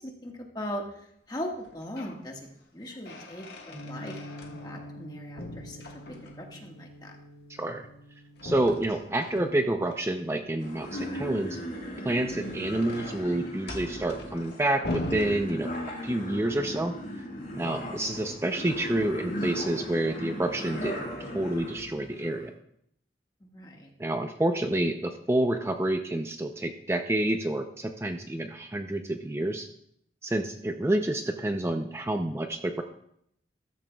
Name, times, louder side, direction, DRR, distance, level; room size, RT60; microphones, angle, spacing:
voice 1, 0.0-5.8 6.1-7.1 23.4-23.9 30.6-30.7, equal, 25° left, 1 dB, 1.6 m, -40 dB
sound 1, 1.6-2.2 2.6-5.1 5.4-6.6 8.4-10.0 12.0-16.2, left 1 dB, 65° left, 1.5 m, -41 dB
sound 2, 3.7-10.5, equal, 80° right, 5.1 m, -47 dB
voice 2, 7.5-7.9 8.4-11.6 12.0-15.7 16.0-16.9 17.6-22.5 24.0-29.7 30.2-32.8, right 1 dB, 15° right, 6 dB, 0.5 m, -28 dB
sound 3, 10.6-22.5, equal, 50° left, 3.8 m, -37 dB
14.5 x 13.5 x 2.3 m, 0.71 s
head